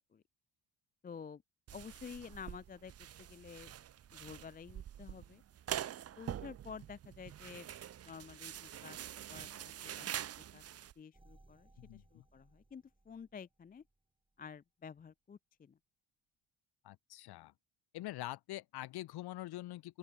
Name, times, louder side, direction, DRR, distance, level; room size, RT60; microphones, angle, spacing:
voice 1, 1.0-1.4 1.7-3.7 4.1-5.4 6.2-7.7 8.1-9.0 9.3-9.5 9.8-10.3 10.5-10.6 11.0-13.8 14.4-15.8, left 6 dB, 20° left, 0.4 m, -50 dB
sound 1, 1.7-10.9, right 10 dB, 35° right, 0.5 m, -45 dB
sound 2, 11.1-14.0 14.4-14.5, right 2 dB, 10° right, 6.4 m, -65 dB
voice 2, 11.8-12.2 16.8-17.5 17.9-20.0, left 16 dB, 55° left, 0.7 m, -45 dB
open air
cardioid pair, 135°, 45 cm